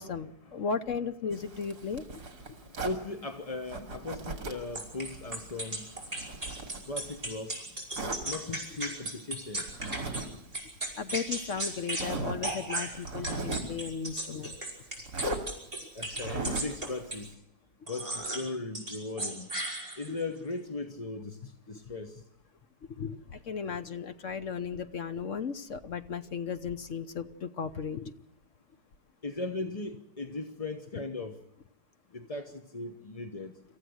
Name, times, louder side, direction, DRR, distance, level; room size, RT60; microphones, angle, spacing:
voice 1, 0.0-2.2 11.0-14.6 20.1-20.4 23.0-28.1, left 6 dB, 50° left, 10 dB, 1.1 m, -35 dB
Zipper (clothing), 1.3-3.0 3.7-4.7 5.1-7.3 7.9-8.2 9.7-10.3 10.6-10.7 11.4-11.5 11.9-12.4 12.9-13.8 15.1-15.4 16.1-16.8, right 3 dB, 65° right, 3.0 m, -37 dB
voice 2, 2.4-6.6 6.8-7.7 8.2-9.7 15.9-17.3 17.9-19.5 20.0-22.2 29.2-31.4 32.1-33.5, left 3 dB, 25° left, 6 dB, 0.9 m, -38 dB
sound 1, 4.8-10.3 10.5-12.1 12.4-17.3 17.9-18.5 18.8-20.2, right 2 dB, 20° right, 5.8 m, -36 dB
27.0 x 14.5 x 7.9 m, 0.85 s
omnidirectional pair, 1.9 m